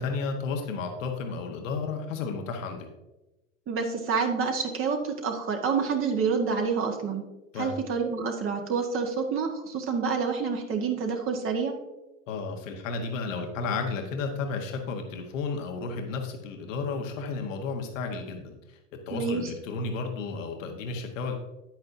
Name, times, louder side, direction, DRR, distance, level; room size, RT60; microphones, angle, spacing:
voice 1, 0.0-2.9 7.5-7.8 12.3-18.8 19.1-21.3, left 4 dB, 70° left, 3 dB, 1.4 m, -32 dB
voice 2, 3.7-7.2 7.5-11.7 19.1-19.5, right 5 dB, 35° right, 2 dB, 1.5 m, -28 dB
9.6 x 8.8 x 2.7 m, 1.0 s
hypercardioid pair, 105°, 39 cm